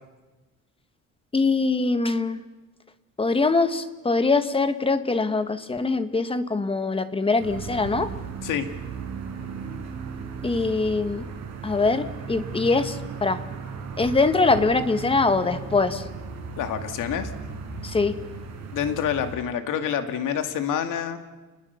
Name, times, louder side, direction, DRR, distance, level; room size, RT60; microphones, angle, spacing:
voice 1, 1.3-2.4 3.2-8.1 10.4-11.3 11.6-13.4 14.0-16.0 17.8-18.2, left 3 dB, 15° left, 11 dB, 1.2 m, -23 dB
sound 1, 7.4-19.4, right 5 dB, 55° right, 5.1 m, -36 dB
voice 2, 16.6-17.3 18.7-21.2, left 8 dB, 75° left, 7 dB, 2.4 m, -27 dB
29.0 x 20.5 x 6.9 m, 1.2 s
cardioid pair, 145°, 32 cm